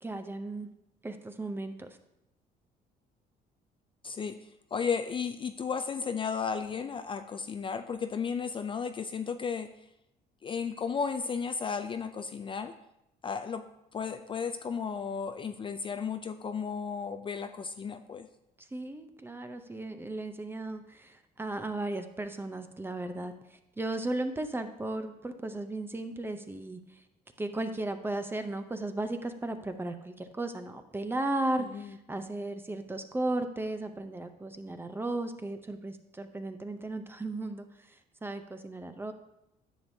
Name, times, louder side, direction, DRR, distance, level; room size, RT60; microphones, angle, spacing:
voice 1, 0.0-0.7 1.0-2.0 18.7-23.3 23.8-26.8 27.4-37.7 38.2-39.1, right 2 dB, 15° right, 8 dB, 0.6 m, -35 dB
voice 2, 4.0-4.4 4.7-9.7 10.4-12.7 13.2-13.6 13.9-18.3 31.6-31.9, left 6 dB, 30° left, 8 dB, 0.4 m, -34 dB
10.0 x 6.9 x 2.7 m, 0.85 s
cardioid pair, 110°, 17 cm